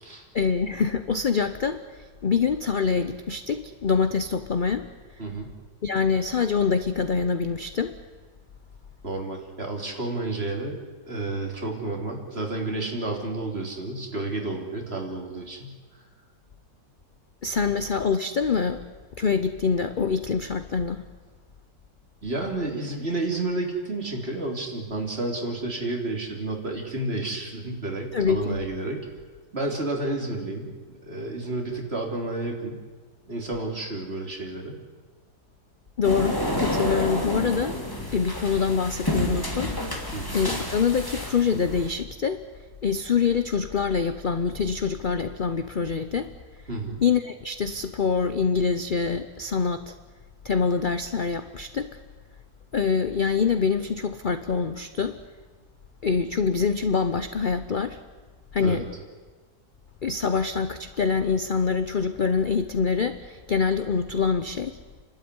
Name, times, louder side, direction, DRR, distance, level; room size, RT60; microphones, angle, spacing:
voice 1, 0.3-4.9 5.8-7.9 17.4-18.8 19.2-21.0 28.1-28.6 36.0-37.8 38.1-39.7 40.3-42.4 42.8-46.3 47.0-49.9 50.4-51.9 52.7-55.2 56.0-58.0 58.5-58.9 60.0-64.8, left 5 dB, 50° left, 10 dB, 0.6 m, -25 dB
voice 2, 5.2-5.5 9.0-15.7 22.2-29.0 29.5-30.8 31.0-32.8 33.3-34.8 40.1-40.3 46.7-47.0 58.6-58.8, right 2 dB, 35° right, 1 dB, 3.4 m, -31 dB
sound 1, 36.0-41.9, left 1 dB, 10° left, 2.7 m, -29 dB
29.5 x 12.5 x 9.7 m, 1.4 s
omnidirectional pair, 1.9 m